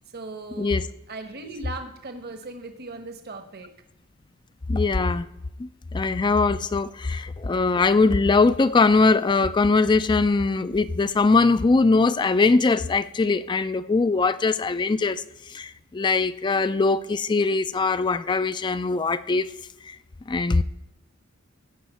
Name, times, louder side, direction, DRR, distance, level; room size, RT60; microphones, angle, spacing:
voice 1, 0.1-0.7 1.1-3.7, right 3 dB, 50° right, 7 dB, 1.1 m, -38 dB
voice 2, 4.7-5.3 5.6-15.2 15.5-19.5 19.9-20.0 20.3-20.6, left 3 dB, 20° left, 13 dB, 0.4 m, -21 dB
15.0 x 5.2 x 9.1 m, 0.89 s
head